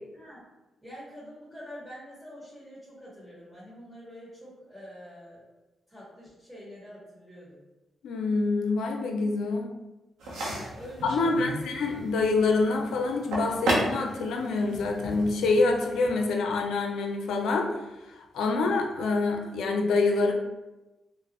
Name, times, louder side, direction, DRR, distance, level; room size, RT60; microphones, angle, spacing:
voice 1, 0.8-5.4 5.9-7.6 10.5-11.7, equal, ahead, -9 dB, 1.5 m, -46 dB
voice 2, 8.0-9.7 11.0-17.7 18.2-20.3, left 3 dB, 80° left, 3 dB, 0.4 m, -26 dB
sound 1, 10.2-16.1, right 1 dB, 85° right, 0.8 m, -34 dB
3.7 x 2.0 x 2.9 m, 1.0 s
supercardioid pair, 60°, 0 cm